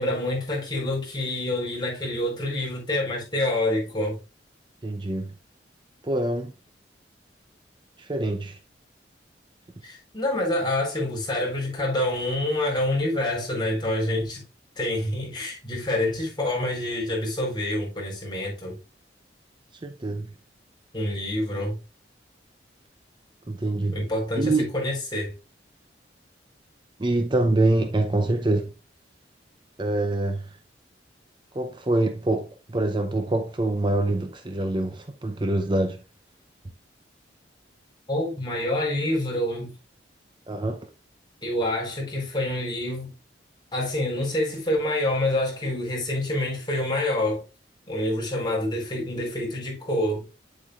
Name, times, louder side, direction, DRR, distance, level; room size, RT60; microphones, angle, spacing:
voice 1, 0.0-4.2 9.8-14.4 14.8-18.8 20.9-21.8 23.9-25.3 38.1-39.7 41.4-43.1 43.7-47.4 47.9-50.2, left 1 dB, 25° left, 4.3 m, -27 dB
voice 2, 4.8-5.3 6.0-6.5 8.0-8.6 19.8-20.3 23.5-24.1 24.4-24.7 27.0-28.7 29.8-30.6 31.5-36.0 40.5-40.9, right 2 dB, 25° right, 0.6 m, -25 dB
9.3 x 7.8 x 2.4 m
head